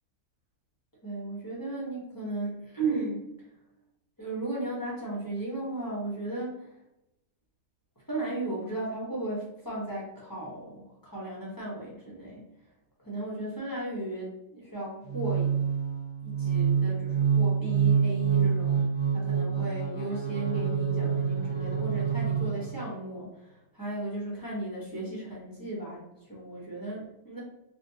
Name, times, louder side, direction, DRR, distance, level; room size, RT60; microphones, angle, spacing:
voice 1, 1.0-3.3 4.2-6.7 8.1-12.4 13.0-15.6 16.2-18.8 19.1-23.5 23.7-26.0 26.3-27.4, right 2 dB, 20° left, -6 dB, 0.5 m, -35 dB
sound 1, 15.1-23.0, right 7 dB, 35° right, 1.2 m, -27 dB
4.1 x 2.2 x 2.7 m, 0.85 s
omnidirectional pair, 1.9 m